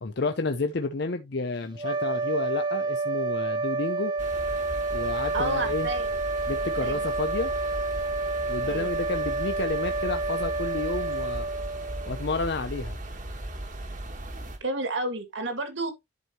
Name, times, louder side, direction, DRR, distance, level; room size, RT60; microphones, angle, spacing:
voice 1, 0.0-4.1 4.9-5.9 6.5-7.5 8.5-11.5 12.1-13.0, left 3 dB, 55° left, 0.6 m, -31 dB
sound 1, 1.7-12.4, right 3 dB, 20° right, 0.4 m, -29 dB
Iguassú River, 4.2-14.6, right 1 dB, 40° right, 1.4 m, -37 dB
voice 2, 5.3-6.1 6.8-7.0 8.6-8.9 14.6-15.9, right 2 dB, 65° right, 2.0 m, -30 dB
11.0 x 4.6 x 2.9 m
head